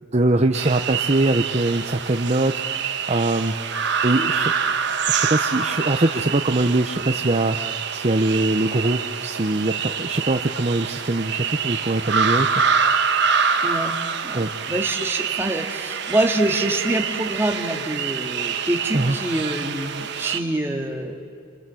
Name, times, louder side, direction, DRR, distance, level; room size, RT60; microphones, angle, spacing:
voice 1, 0.1-3.5 4.0-4.5 5.1-12.6 14.3-14.5 18.9-19.2, right 2 dB, 30° right, 5 dB, 0.7 m, -22 dB
CT Dawn Birds, 0.5-20.4, right 6 dB, 55° right, 1.3 m, -26 dB
voice 2, 13.6-14.0 14.2-21.2, right 1 dB, 10° right, 1 dB, 2.0 m, -25 dB
29.0 x 26.0 x 7.7 m, 2.3 s
head